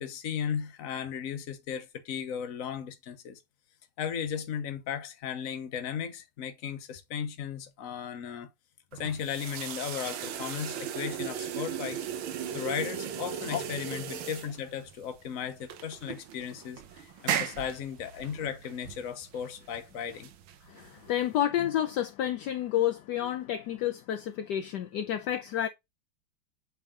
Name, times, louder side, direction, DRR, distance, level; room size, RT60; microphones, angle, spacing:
voice 1, 0.0-3.4 4.0-8.5 8.9-12.0 12.5-20.3, left 8 dB, 50° left, 1.1 m, -36 dB
sound 1, 8.9-21.3, right 9 dB, 75° right, 1.6 m, -37 dB
voice 2, 20.7-25.7, left 11 dB, 70° left, 1.0 m, -30 dB
8.1 x 3.5 x 3.6 m
omnidirectional pair, 2.3 m